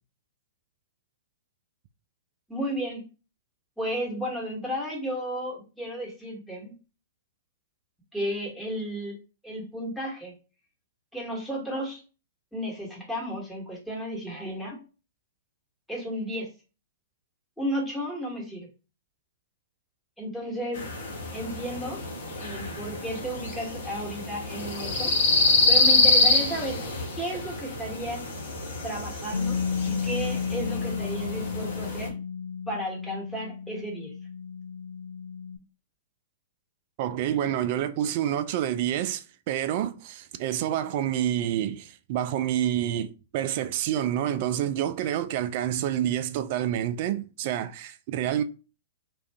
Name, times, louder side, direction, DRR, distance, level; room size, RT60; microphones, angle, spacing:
voice 1, 2.5-3.0 3.8-6.7 8.1-9.2 9.4-10.3 11.1-12.0 12.5-14.8 15.9-16.5 17.6-18.7 20.2-20.8 21.3-22.0 22.4-25.1 25.7-26.8 27.2-28.2 28.8-32.1 32.7-34.1, equal, ahead, 1.2 m, -33 dB
sound 1, 20.7-32.1, left 3 dB, 60° left, 0.9 m, -26 dB
Bass guitar, 29.3-35.6, left 6 dB, 80° left, 0.3 m, -32 dB
voice 2, 37.0-48.4, right 11 dB, 45° right, 0.3 m, -28 dB
2.5 x 2.3 x 3.3 m
figure-of-eight pair, 110°, 0 cm